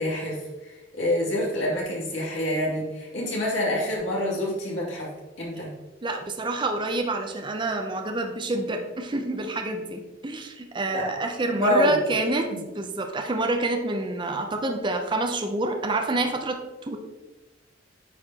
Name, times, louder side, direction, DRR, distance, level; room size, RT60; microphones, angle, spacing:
voice 1, 0.0-5.1 5.4-5.7 10.9-11.1 11.6-12.0 12.5-12.6, left 1 dB, 85° left, -4 dB, 2.3 m, -27 dB
voice 2, 6.0-17.0, right 2 dB, 25° right, 4 dB, 0.5 m, -28 dB
9.0 x 4.8 x 2.8 m, 1.1 s
head